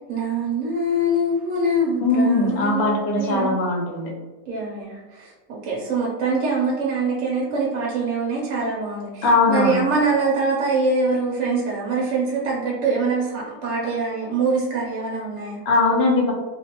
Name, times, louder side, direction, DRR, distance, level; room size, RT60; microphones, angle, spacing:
voice 1, 0.1-3.6 4.5-15.6, right 3 dB, 75° right, -5 dB, 0.9 m, -24 dB
voice 2, 2.0-4.1 9.2-9.8 15.7-16.3, left 3 dB, 60° left, 0 dB, 0.7 m, -20 dB
2.5 x 2.0 x 2.7 m, 1.2 s
omnidirectional pair, 1.4 m